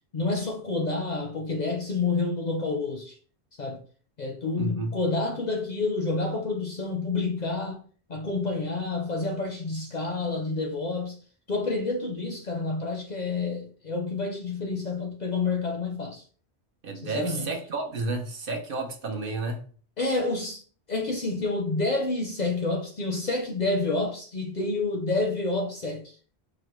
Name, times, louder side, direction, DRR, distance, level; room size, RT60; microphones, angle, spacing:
voice 1, 0.1-3.2 3.6-3.8 4.2-7.8 8.1-11.2 11.5-16.2 16.9-17.5 20.0-20.6 20.9-26.2, left 3 dB, 50° left, 0.6 m, -29 dB
voice 2, 4.6-4.9 16.8-19.6, right 3 dB, 60° right, 0.8 m, -31 dB
4.9 x 2.1 x 3.0 m
omnidirectional pair, 1.1 m